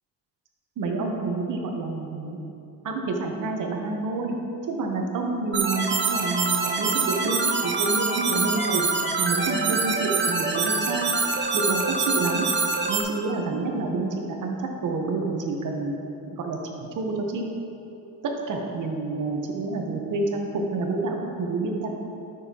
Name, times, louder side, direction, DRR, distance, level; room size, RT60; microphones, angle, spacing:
voice 1, 0.8-2.4 2.8-4.4 4.8-8.9 9.2-11.1 11.5-12.5 12.9-14.6 14.8-15.9 16.3-17.5 18.5-21.9, right 3 dB, 55° right, 1 dB, 1.0 m, -28 dB
sound 1, 5.5-13.0, right 4 dB, 30° right, 0.6 m, -25 dB
9.3 x 6.5 x 2.9 m, 2.9 s
cardioid pair, 140°, 37 cm